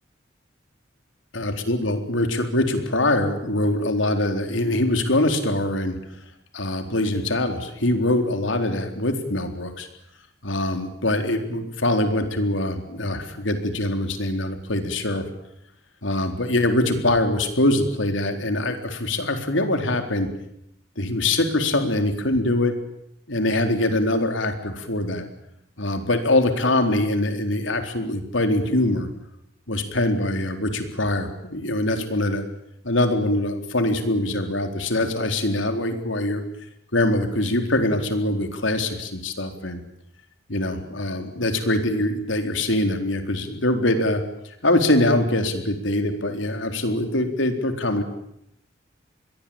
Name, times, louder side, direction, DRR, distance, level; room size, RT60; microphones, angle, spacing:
voice 1, 1.3-6.0 6.5-9.9 10.4-15.3 16.0-20.3 21.0-22.7 23.3-25.3 25.8-29.1 29.7-32.4 32.8-36.4 36.9-39.8 40.5-44.2 44.6-48.0, left 1 dB, 80° left, 6 dB, 4.1 m, -23 dB
28.0 x 22.0 x 8.9 m, 0.77 s
head